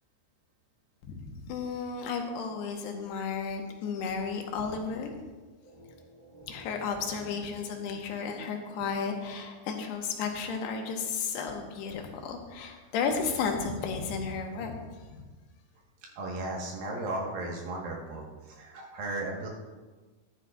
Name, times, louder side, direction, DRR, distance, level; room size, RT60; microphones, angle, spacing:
voice 1, 1.1-5.2 6.5-14.8 15.1-15.2, left 5 dB, 85° left, 2 dB, 3.1 m, -33 dB
voice 2, 5.6-6.9 16.2-19.5, right 2 dB, 65° right, -1 dB, 3.0 m, -37 dB
13.5 x 11.5 x 2.4 m, 1.3 s
omnidirectional pair, 4.7 m